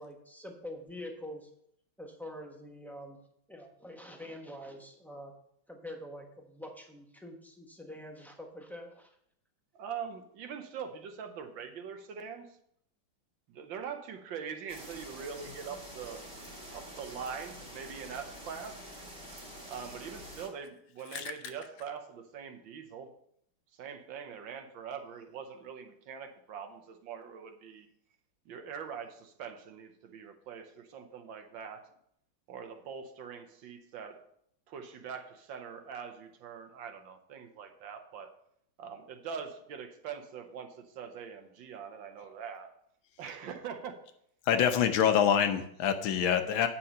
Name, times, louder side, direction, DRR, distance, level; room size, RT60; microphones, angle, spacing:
voice 1, 0.0-1.5 2.0-3.2 3.5-5.3 5.7-9.1, left 1 dB, ahead, 1 dB, 0.6 m, -45 dB
voice 2, 9.8-12.5 13.5-16.2 16.7-18.8 19.7-23.1 23.8-27.9 28.5-31.8 32.5-34.2 34.7-38.3 38.8-42.7 43.2-44.0, right 7 dB, 70° right, 6 dB, 1.6 m, -43 dB
sound 1, 14.7-20.5, equal, 25° right, 1.8 m, -47 dB
voice 3, 44.5-46.7, left 8 dB, 75° left, 8 dB, 1.6 m, -26 dB
8.7 x 5.8 x 5.4 m, 0.71 s
omnidirectional pair, 2.2 m